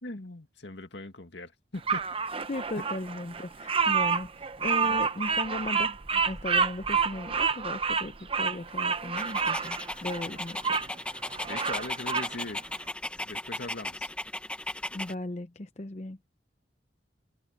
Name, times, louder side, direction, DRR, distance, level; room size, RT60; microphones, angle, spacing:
voice 1, 0.0-2.0 4.8-5.0 11.4-12.6 13.2-14.1, left 2 dB, 75° left, 2.2 m, -40 dB
Bird vocalization bird call bird song, 1.9-10.9 11.3-12.3, right 5 dB, 30° right, 0.8 m, -28 dB
voice 2, 2.5-10.8 14.9-16.2, left 2 dB, 40° left, 0.7 m, -37 dB
Dog, 9.2-15.1, left 1 dB, 5° left, 0.8 m, -36 dB
head